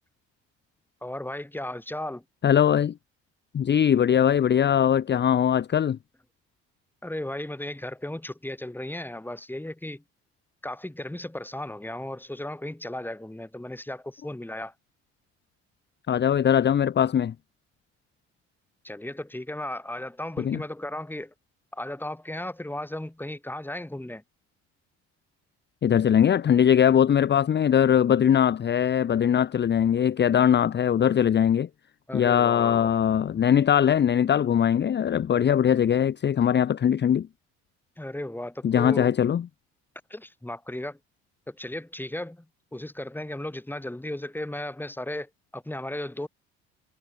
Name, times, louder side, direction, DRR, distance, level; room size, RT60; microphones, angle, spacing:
voice 1, 1.0-2.2 7.0-10.0 10.6-14.7 18.8-21.3 21.7-24.2 32.1-32.9 38.0-39.1 40.1-41.0 41.5-42.5 42.7-46.3, left 1 dB, 5° left, 2.3 m, -35 dB
voice 2, 2.4-2.9 3.5-6.0 16.1-17.3 20.4-20.6 25.8-31.7 32.1-37.3 38.6-39.5, left 9 dB, 35° left, 0.7 m, -21 dB
hypercardioid pair, 60°, 32 cm